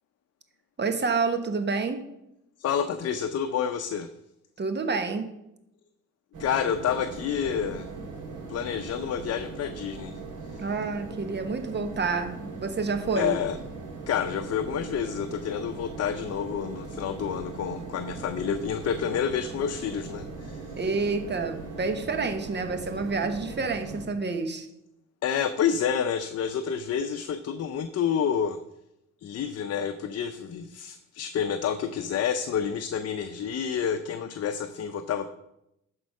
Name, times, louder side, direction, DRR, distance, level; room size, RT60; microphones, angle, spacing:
voice 1, 0.8-2.0 4.6-5.3 10.6-13.4 20.8-24.7, right 4 dB, 35° right, 7 dB, 1.3 m, -28 dB
voice 2, 2.6-4.1 6.4-7.9 8.5-10.6 13.1-13.6 14.1-20.8 25.2-28.6 29.2-35.3, left 8 dB, 55° left, 8 dB, 0.7 m, -29 dB
sound 1, 6.3-24.1, right 3 dB, 80° right, 2.6 m, -40 dB
13.0 x 4.5 x 5.4 m, 0.85 s
cardioid pair, 90°, 30 cm